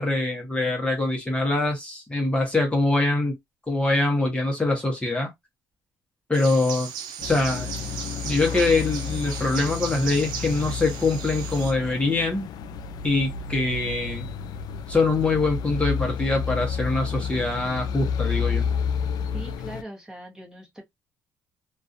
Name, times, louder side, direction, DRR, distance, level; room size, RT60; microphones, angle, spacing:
voice 1, 0.0-3.4 3.7-5.3 6.3-6.9 7.2-7.7 8.2-12.5 13.0-14.3 14.9-18.7, left 2 dB, 15° left, 0.9 m, -24 dB
sound 1, 6.3-11.7, right 8 dB, 85° right, 0.5 m, -37 dB
sound 2, 7.2-19.8, left 6 dB, 70° left, 0.3 m, -30 dB
voice 2, 19.3-20.8, right 1 dB, 10° right, 1.0 m, -40 dB
2.4 x 2.3 x 2.5 m
cardioid pair, 85°, 7 cm